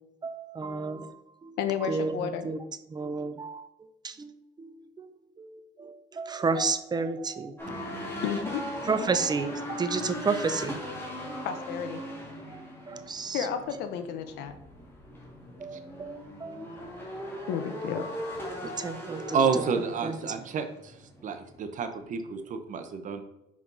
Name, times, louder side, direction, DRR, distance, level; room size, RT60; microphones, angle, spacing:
voice 1, 0.2-1.1 1.4-2.6 2.9-3.7 4.0-4.3 4.6-5.1 5.4-7.5 8.9-11.0 11.3-11.4 12.5-12.6 12.9-13.5 15.6-16.6 17.2-17.5 18.6-19.4 20.0-20.2 22.3-22.4 23.1-23.2, right 4 dB, 25° right, 11 dB, 0.5 m, -32 dB
voice 2, 1.6-2.5 8.2-8.6 11.4-12.0 13.3-14.5 17.5-18.1, left 8 dB, 85° left, 8 dB, 0.8 m, -31 dB
sound 1, 7.6-21.6 21.9-22.2, left 1 dB, 15° left, 2.1 m, -39 dB
voice 3, 19.3-20.9 21.2-23.2, right 5 dB, 50° right, 8 dB, 0.9 m, -29 dB
5.6 x 4.9 x 3.9 m, 0.89 s
cardioid pair, 110°, 17 cm